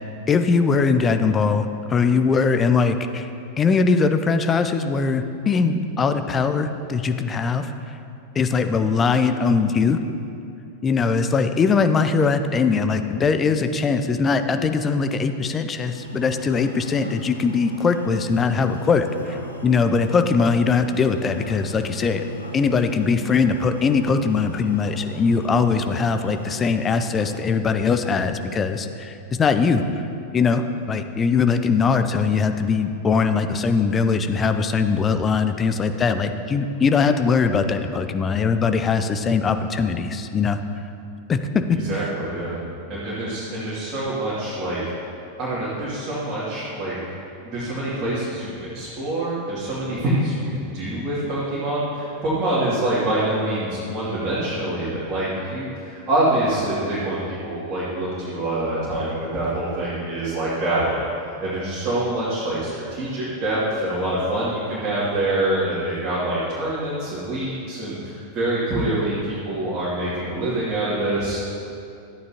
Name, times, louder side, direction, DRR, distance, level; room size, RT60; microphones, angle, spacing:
voice 1, 0.3-3.3 3.6-7.7 8.3-10.0 10.8-19.4 19.6-22.2 22.5-29.8 30.3-40.6 41.3-42.1, left 5 dB, 20° left, 8 dB, 0.5 m, -21 dB
sound 1, 15.9-27.4, equal, 80° left, 0.9 m, -37 dB
voice 2, 41.8-44.8 45.4-47.0 47.4-61.0 61.4-71.5, right 1 dB, 25° right, -10 dB, 2.6 m, -25 dB
13.5 x 9.4 x 2.9 m, 2.6 s
figure-of-eight pair, 90°, 0 cm